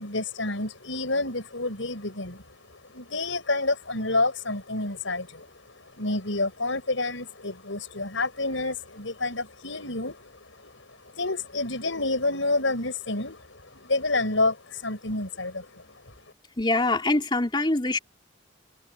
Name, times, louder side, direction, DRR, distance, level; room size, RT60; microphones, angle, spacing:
voice 1, 0.0-2.4 2.7-16.1, left 2 dB, 80° left, 5.5 m, -29 dB
voice 2, 16.6-18.0, left 2 dB, 25° left, 3.3 m, -24 dB
head